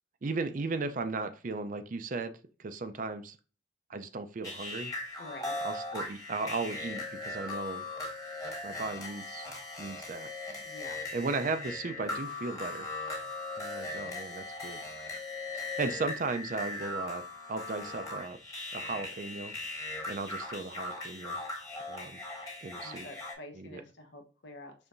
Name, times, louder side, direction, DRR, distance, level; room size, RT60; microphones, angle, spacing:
voice 1, 0.2-2.3 2.6-3.4 3.9-4.9 5.6-7.9 8.6-9.5 9.8-10.3 11.1-12.9 13.6-15.1 15.5-17.2 17.5-18.4 18.7-21.4 21.9-22.2 22.6-23.1 23.5-23.8, right 3 dB, 45° right, 9 dB, 0.5 m, -36 dB
sound 1, 4.4-23.3, left 2 dB, 20° left, 1.4 m, -39 dB
voice 2, 5.2-5.6 10.6-11.0 22.8-24.9, left 2 dB, 70° left, 4 dB, 0.9 m, -48 dB
5.4 x 3.4 x 2.5 m, 0.35 s
head